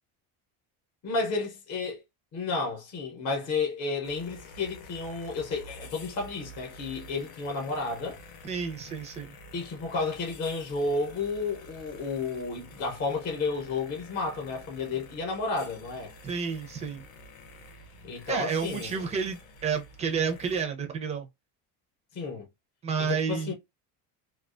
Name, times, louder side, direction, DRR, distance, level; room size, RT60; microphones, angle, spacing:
voice 1, 1.0-2.0 2.3-8.2 9.5-16.1 18.0-19.0 22.1-22.5 23.0-23.5, left 3 dB, 40° left, 0.8 m, -32 dB
sound 1, 4.0-20.6, left 2 dB, 85° left, 0.8 m, -49 dB
voice 2, 8.4-9.4 16.2-17.1 18.3-21.3 22.8-23.5, right 6 dB, 15° right, 0.4 m, -30 dB
2.4 x 2.2 x 2.4 m
cardioid pair, 150°, 41 cm